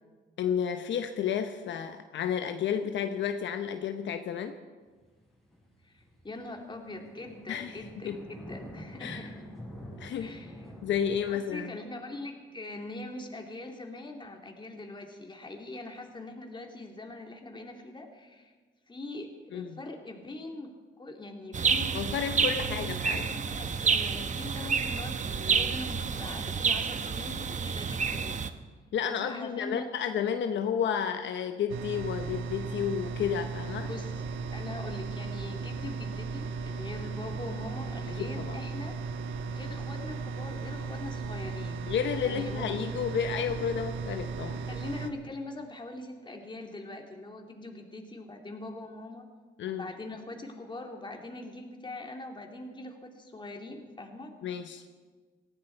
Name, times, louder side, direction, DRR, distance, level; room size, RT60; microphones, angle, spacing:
voice 1, 0.4-4.6 7.5-8.2 9.0-9.3 10.0-10.3 10.8-11.7 19.5-19.8 21.9-23.3 28.9-33.9 38.1-38.6 41.9-44.6 49.6-49.8 54.4-54.8, left 8 dB, 70° left, 7 dB, 0.9 m, -31 dB
sound 1, 5.0-11.2, equal, ahead, 5.5 m, -46 dB
voice 2, 5.8-9.4 10.2-10.7 11.3-18.5 18.9-20.7 21.0-22.1 22.6-28.5 29.1-29.9 33.9-34.1 34.5-38.9 39.5-41.8 42.2-42.7 44.7-49.3 49.6-54.3, left 2 dB, 25° left, 2 dB, 2.6 m, -42 dB
sound 2, 21.5-28.5, right 6 dB, 40° right, 0.9 m, -29 dB
sound 3, 31.7-45.1, right 4 dB, 75° right, 1.2 m, -36 dB
18.5 x 15.0 x 4.5 m, 1.4 s
cardioid pair, 90°, 20 cm